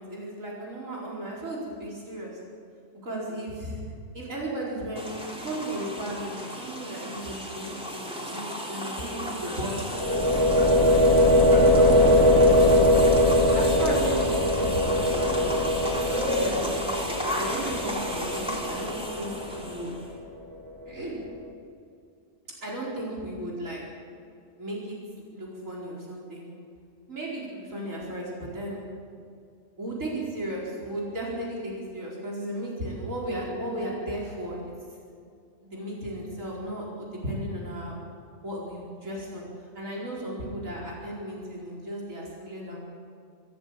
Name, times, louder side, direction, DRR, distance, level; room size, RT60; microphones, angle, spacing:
voice 1, 0.0-2.4 3.0-3.8 4.1-10.9 11.5-13.0 13.5-19.9 20.9-21.2 22.6-23.8 24.6-25.0 25.3-26.5 27.1-28.9 29.8-34.7 35.6-37.9 38.4-42.8, right 1 dB, 75° right, -5 dB, 5.1 m, -35 dB
sound 1, 5.0-20.1, equal, 5° right, 3.4 m, -34 dB
sound 2, 9.9-19.8, left 1 dB, 15° left, 2.2 m, -21 dB
24.5 x 14.5 x 7.6 m, 2.4 s
omnidirectional pair, 1.4 m